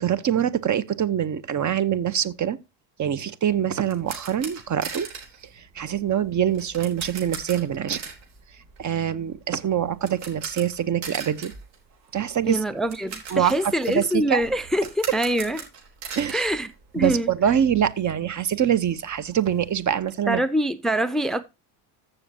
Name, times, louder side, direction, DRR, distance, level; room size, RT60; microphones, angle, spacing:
voice 1, 0.0-2.6 3.0-5.1 5.6-8.0 8.8-11.5 12.1-12.6 13.3-14.4 16.1-16.4 17.0-20.4, right 9 dB, 35° right, 1.1 m, -24 dB
sound 1, 3.4-17.4 17.7-17.8 18.2-18.3 18.6-20.1, right 6 dB, 75° right, 4.2 m, -40 dB
voice 2, 12.4-15.6 16.3-16.7 16.9-17.3 20.3-21.4, right 1 dB, ahead, 0.8 m, -24 dB
14.5 x 6.9 x 2.9 m
hypercardioid pair, 70°, 50 cm